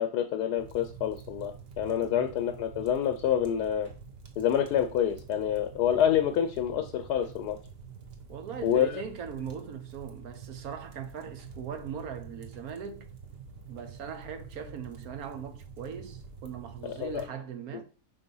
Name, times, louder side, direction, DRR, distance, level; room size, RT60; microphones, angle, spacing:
voice 1, 0.0-3.9 4.4-7.6 8.6-9.0 16.8-17.2, left 9 dB, 80° left, 1.2 m, -27 dB
sound 1, 0.6-17.3, right 5 dB, 45° right, 1.1 m, -47 dB
voice 2, 8.3-13.1 13.7-17.8, right 7 dB, 65° right, 1.4 m, -40 dB
5.9 x 3.7 x 5.4 m
omnidirectional pair, 1.7 m